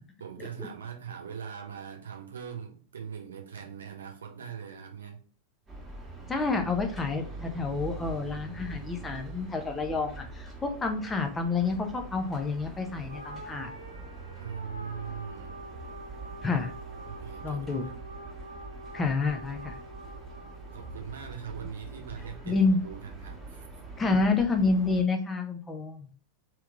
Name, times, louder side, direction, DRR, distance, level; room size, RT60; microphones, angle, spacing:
voice 1, 0.2-5.2 14.4-15.6 17.1-18.0 20.4-23.7, right 7 dB, 65° right, 2 dB, 0.9 m, -41 dB
sound 1, 5.7-25.0, right 3 dB, 10° right, 1.4 m, -44 dB
voice 2, 6.3-13.7 16.4-16.7 17.4-17.8 18.9-19.8 22.4-22.8 24.0-26.1, left 4 dB, 15° left, 4 dB, 0.7 m, -28 dB
sound 2, 13.1-21.7, right 2 dB, 85° right, 0.5 m, -46 dB
3.5 x 3.0 x 3.5 m, 0.42 s
figure-of-eight pair, 90°, 0 cm